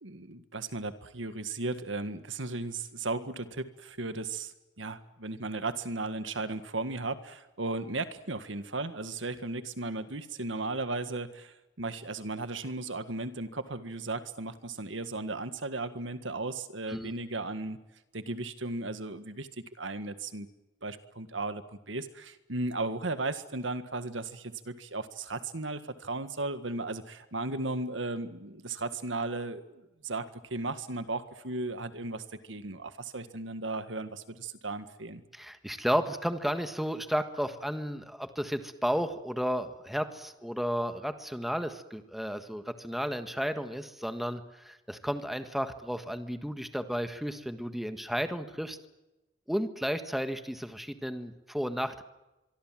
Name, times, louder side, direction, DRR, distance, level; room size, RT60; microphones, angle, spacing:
voice 1, 0.0-17.8 18.1-19.5 19.8-20.5 20.8-35.2, right 2 dB, 85° right, 10 dB, 1.8 m, -36 dB
voice 2, 35.3-48.8 49.5-52.0, equal, ahead, 8 dB, 1.6 m, -33 dB
24.5 x 24.0 x 7.6 m, 1.0 s
head